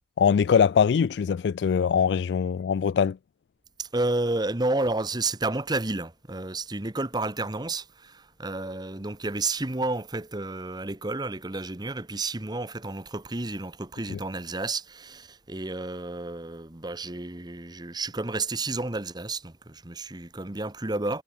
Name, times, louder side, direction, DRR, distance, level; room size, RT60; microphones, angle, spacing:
voice 1, 0.2-3.2 14.1-14.2, left 7 dB, 75° left, 0.3 m, -22 dB
voice 2, 3.8-21.2, right 2 dB, 25° right, 1.2 m, -31 dB
head